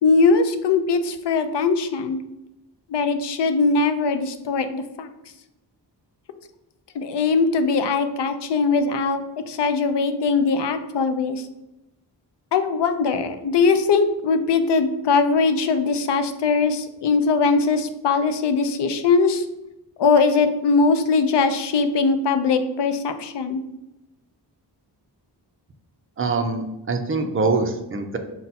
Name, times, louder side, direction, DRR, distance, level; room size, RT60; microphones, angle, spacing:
voice 1, 0.0-2.2 2.9-5.1 6.9-11.5 12.5-19.4 20.0-23.6, left 4 dB, 75° left, 9 dB, 0.5 m, -21 dB
voice 2, 26.2-28.2, right 3 dB, 30° right, 5 dB, 0.4 m, -24 dB
5.6 x 2.2 x 4.0 m, 0.93 s
wide cardioid pair, 160°, 42 cm